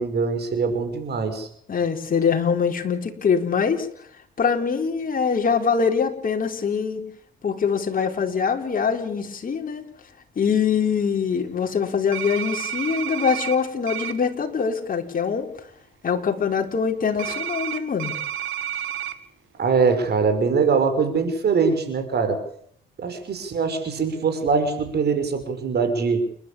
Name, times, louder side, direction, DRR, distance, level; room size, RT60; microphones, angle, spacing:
voice 1, 0.0-1.5 19.6-22.4 23.0-26.3, right 5 dB, 55° right, 8 dB, 5.7 m, -22 dB
voice 2, 1.7-3.9 4.4-7.0 7.4-9.8 10.4-15.5 16.0-18.1, left 6 dB, 45° left, 3 dB, 4.4 m, -23 dB
sound 1, 12.1-13.6 13.9-14.1 17.2-19.1, right 10 dB, 80° right, 2.0 m, -30 dB
29.5 x 12.0 x 8.7 m, 0.64 s
cardioid pair, 90°, 20 cm